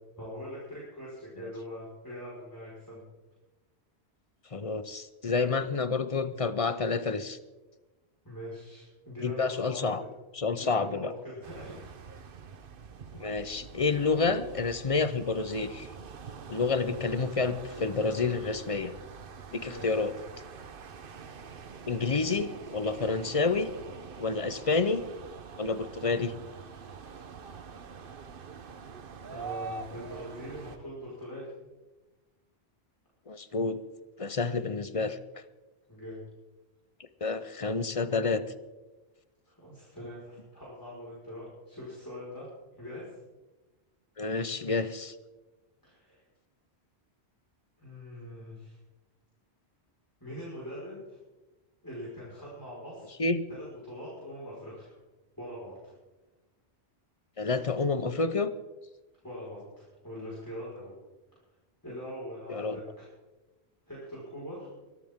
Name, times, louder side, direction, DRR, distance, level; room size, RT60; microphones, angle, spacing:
voice 1, 0.2-3.0 8.2-9.9 10.6-11.9 19.6-20.0 29.3-31.5 35.9-36.2 39.5-42.5 42.7-43.1 45.8-46.2 47.8-48.8 50.2-51.2 51.8-53.1 53.5-54.9 55.4-55.9 59.2-60.9 61.3-61.4 61.8-63.1 63.9-64.7, equal, 20° left, -8 dB, 4.8 m, -42 dB
voice 2, 4.5-7.4 9.2-10.0 10.3-11.1 13.1-15.9 16.5-18.9 19.5-20.1 21.9-23.7 24.2-25.0 25.6-26.3 33.3-33.8 34.2-35.2 37.2-38.4 44.2-45.1 53.2-53.4 57.4-58.5 62.5-62.8, left 4 dB, 35° left, 12 dB, 0.7 m, -29 dB
sound 1, 11.4-30.8, right 5 dB, 55° right, 1.0 m, -45 dB
23.5 x 13.5 x 3.7 m, 1.1 s
omnidirectional pair, 1.1 m